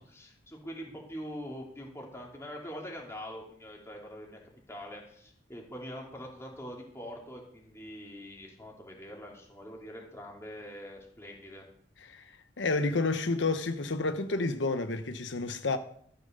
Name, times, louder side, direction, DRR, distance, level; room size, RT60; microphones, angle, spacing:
voice 1, 0.0-4.4 4.7-11.6, equal, 15° left, 2.9 m, -44 dB
voice 2, 12.0-15.8, left 3 dB, 85° left, 0.9 m, -30 dB
13.0 x 7.0 x 6.7 m
head